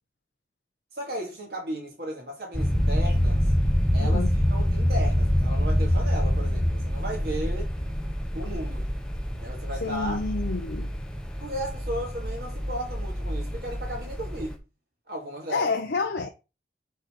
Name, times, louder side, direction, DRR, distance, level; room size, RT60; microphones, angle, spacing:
voice 1, 0.9-3.4 3.9-4.2 4.5-7.7 8.3-8.9 9.4-10.2 11.4-14.6 15.1-15.7, equal, 60° right, 2.3 m, -35 dB
sound 1, 2.5-14.5, equal, 5° left, 0.9 m, -26 dB
voice 2, 4.0-4.3 9.8-10.9 15.5-16.3, left 4 dB, 75° left, 0.6 m, -29 dB
6.7 x 3.9 x 5.2 m
head